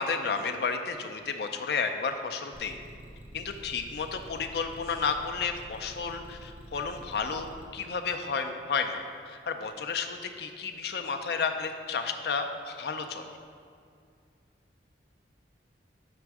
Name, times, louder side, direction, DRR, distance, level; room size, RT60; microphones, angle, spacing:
voice 1, 0.0-2.8 3.3-13.3, left 5 dB, 60° left, 6 dB, 0.4 m, -32 dB
sound 1, 2.5-7.6, right 1 dB, 10° right, 0.4 m, -47 dB
5.9 x 4.3 x 4.7 m, 2.4 s
head